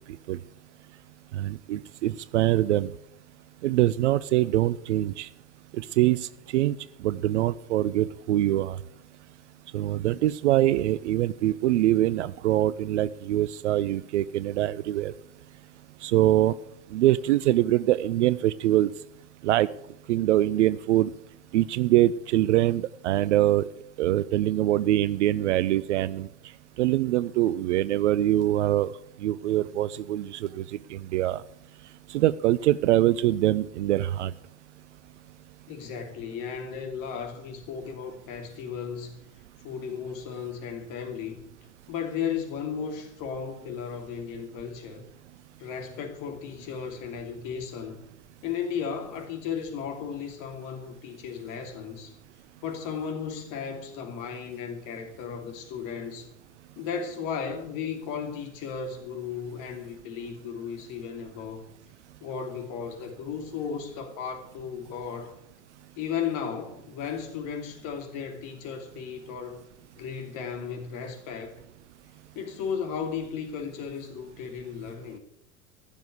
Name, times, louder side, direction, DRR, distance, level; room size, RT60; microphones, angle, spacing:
voice 1, 1.3-2.9 3.6-5.3 5.7-6.8 7.0-8.8 9.7-15.1 16.0-16.6 16.9-18.9 19.4-19.7 20.1-21.1 21.5-23.7 24.0-26.3 26.8-28.9 29.2-30.6 30.9-31.4 32.1-34.3, right 14 dB, 50° right, 0.5 m, -24 dB
voice 2, 35.7-39.2 39.6-41.4 41.9-45.0 45.6-48.0 48.4-52.2 52.6-56.3 56.8-61.7 62.2-65.3 66.0-69.6 70.0-71.6 72.3-75.2, left 7 dB, 40° left, 2.7 m, -35 dB
14.5 x 7.0 x 8.1 m
figure-of-eight pair, 90°, 47 cm